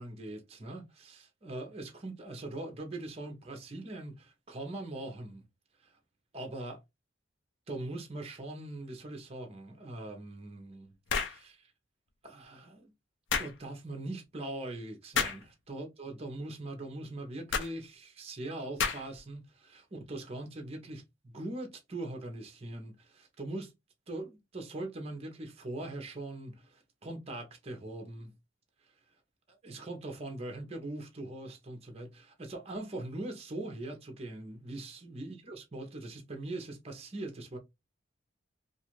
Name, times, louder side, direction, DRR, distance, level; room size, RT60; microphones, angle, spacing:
voice 1, 0.0-5.5 5.8-5.9 6.3-6.8 7.7-11.0 11.2-11.7 12.2-12.9 13.4-23.7 24.1-28.3 29.5-37.6, right 2 dB, 30° right, 0.6 m, -41 dB
sound 1, 11.1-11.4 13.3-13.5 15.1-15.4 17.5-17.7 18.8-19.2, left 6 dB, 60° left, 0.5 m, -30 dB
2.4 x 2.3 x 2.9 m
head